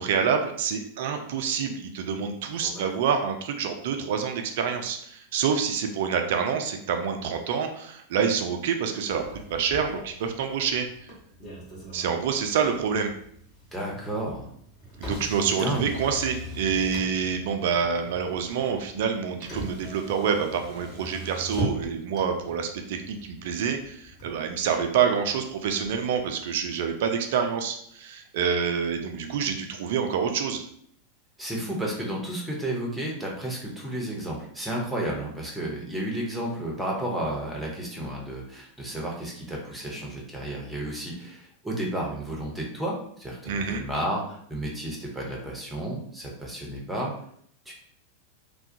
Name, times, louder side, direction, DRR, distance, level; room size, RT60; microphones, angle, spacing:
voice 1, 0.0-10.9 11.9-13.1 15.0-30.6 43.5-43.8, right 6 dB, 55° right, 5 dB, 0.3 m, -27 dB
voice 2, 2.5-3.0 13.7-14.5 15.6-15.9 31.4-47.1 47.7-47.8, right 1 dB, 5° right, -2 dB, 0.7 m, -32 dB
Motor vehicle (road), 9.1-26.2, right 1 dB, 30° left, 0.9 m, -41 dB
2.3 x 2.1 x 2.6 m, 0.65 s
figure-of-eight pair, 90°, 0 cm